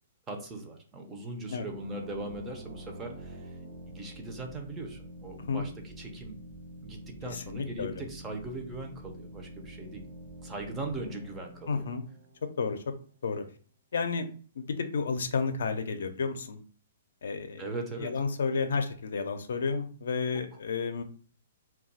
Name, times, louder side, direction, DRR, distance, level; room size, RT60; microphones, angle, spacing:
voice 1, 0.3-3.6 3.9-6.4 6.8-10.0 10.4-11.9 17.6-18.1, right 2 dB, 15° right, 2 dB, 0.5 m, -39 dB
sound 1, 1.5-13.0, right 1 dB, 60° right, 0.7 m, -47 dB
voice 2, 7.3-7.9 11.7-12.0 12.6-12.8 13.2-13.4 13.9-14.3 14.6-16.6 17.2-17.6 18.0-21.0, left 5 dB, 80° left, 8 dB, 0.4 m, -31 dB
2.3 x 2.2 x 3.9 m, 0.42 s
hypercardioid pair, 160°, 0 cm